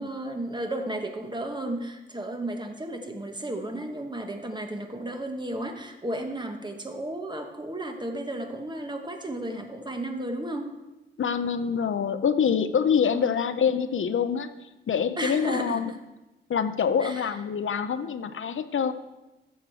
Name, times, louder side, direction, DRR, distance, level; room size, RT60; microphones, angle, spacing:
voice 1, 0.0-10.7 13.1-13.4 15.2-16.0 17.0-17.4, right 1 dB, 20° right, 4 dB, 1.1 m, -33 dB
voice 2, 11.2-14.5 14.9-15.9 16.5-18.9, left 7 dB, 90° left, 10 dB, 0.6 m, -25 dB
14.5 x 6.5 x 4.5 m, 1.0 s
wide cardioid pair, 140°, 20 cm